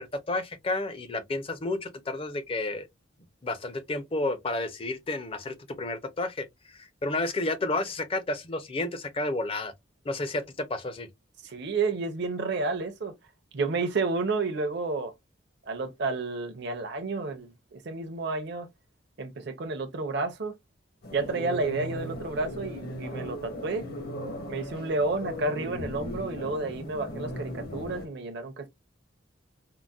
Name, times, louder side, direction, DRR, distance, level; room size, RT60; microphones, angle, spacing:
voice 1, 0.0-2.9 3.4-9.7 10.1-11.1, left 2 dB, 30° left, 0.5 m, -31 dB
voice 2, 11.4-13.1 13.5-15.1 15.7-18.7 19.2-20.6 21.1-23.9 24.5-28.7, right 3 dB, 55° right, 0.6 m, -31 dB
sound 1, 21.0-28.1, equal, 50° left, 0.9 m, -37 dB
3.7 x 2.1 x 2.3 m
head